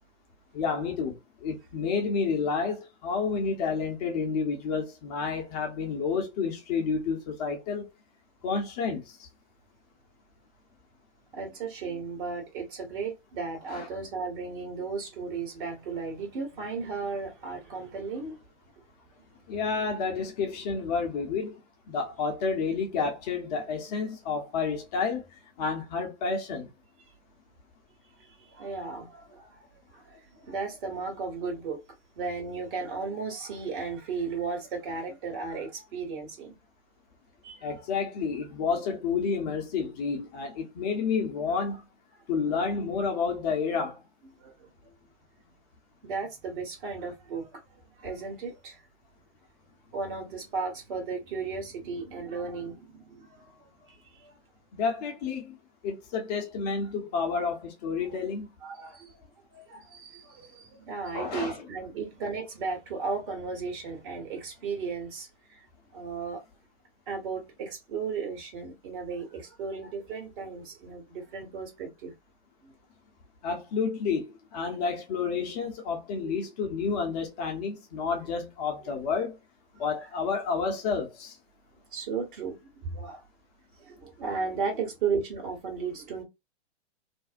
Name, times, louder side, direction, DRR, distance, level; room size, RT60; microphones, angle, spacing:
voice 1, 0.5-7.9 8.4-9.3 13.7-13.9 19.5-21.6 21.9-25.2 25.6-26.7 37.6-41.8 42.3-44.0 54.7-55.6 55.8-58.5 61.1-61.6 73.4-79.4 79.8-81.4, left 5 dB, 35° left, 0.7 m, -30 dB
voice 2, 11.3-18.4 28.2-29.7 29.9-31.8 32.2-36.5 37.4-37.7 44.4-44.7 46.0-47.6 47.9-48.8 49.9-54.3 58.6-65.6 65.9-66.4 67.1-72.1 72.6-72.7 76.1-76.3 78.8-78.9 79.8-79.9 81.9-83.2 83.8-86.2, right 4 dB, 50° right, 1.3 m, -35 dB
2.5 x 2.0 x 2.5 m
figure-of-eight pair, 105°, 35 cm